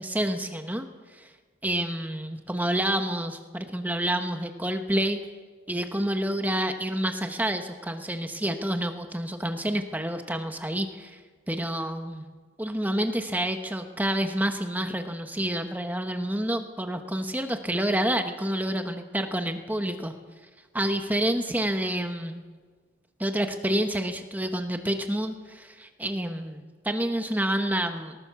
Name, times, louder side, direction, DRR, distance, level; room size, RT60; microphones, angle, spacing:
voice 1, 0.0-1.3 1.6-5.2 5.7-11.2 11.5-12.3 12.6-20.1 20.7-22.4 23.2-28.2, right 1 dB, 10° right, 6 dB, 1.1 m, -28 dB
19.5 x 19.0 x 7.0 m, 1.5 s
head